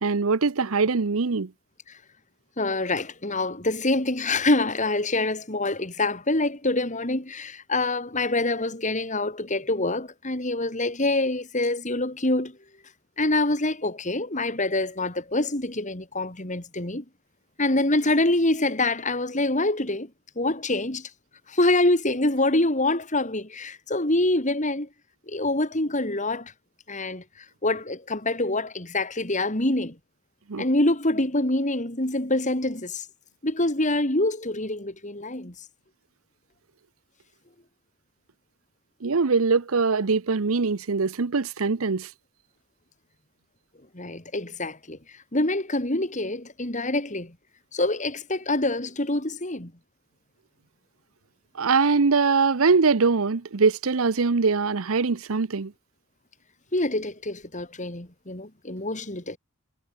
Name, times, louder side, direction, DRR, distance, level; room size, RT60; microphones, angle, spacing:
voice 1, 0.0-1.5 30.5-30.6 39.0-42.1 51.5-55.7, right 4 dB, 75° right, 0.8 m, -22 dB
voice 2, 2.6-12.6 13.2-17.0 17.6-20.1 20.4-21.1 21.5-24.9 25.3-26.5 26.9-27.2 27.6-30.0 30.6-33.1 33.4-35.5 43.9-45.0 45.3-47.3 47.7-49.7 56.7-59.4, left 2 dB, 35° left, 3.4 m, -25 dB
head